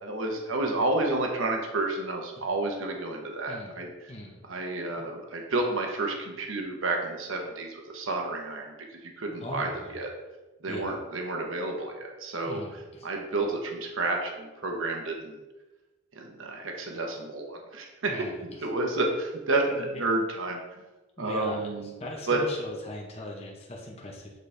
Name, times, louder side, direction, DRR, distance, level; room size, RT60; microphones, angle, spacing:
voice 1, 0.0-4.1 4.5-10.1 10.6-12.6 13.0-15.4 16.1-18.1 18.6-20.6 21.2-21.9 22.3-22.4, right 2 dB, 75° right, 1 dB, 1.0 m, -30 dB
voice 2, 4.1-4.4 5.0-5.1 9.4-10.0 10.7-10.9 12.5-13.1 18.1-18.6 19.7-19.9 21.2-24.3, left 1 dB, 30° left, -1 dB, 0.9 m, -39 dB
8.1 x 4.1 x 3.4 m, 1.1 s
head